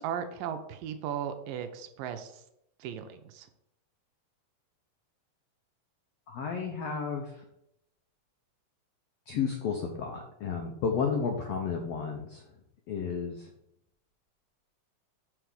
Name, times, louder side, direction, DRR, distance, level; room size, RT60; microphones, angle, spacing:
voice 1, 0.0-2.4 2.8-3.5, right 8 dB, 80° right, 8 dB, 2.3 m, -36 dB
voice 2, 6.3-7.4 9.3-12.5 12.9-13.5, left 6 dB, 90° left, 2 dB, 1.4 m, -32 dB
5.9 x 4.6 x 6.3 m, 0.79 s
omnidirectional pair, 4.0 m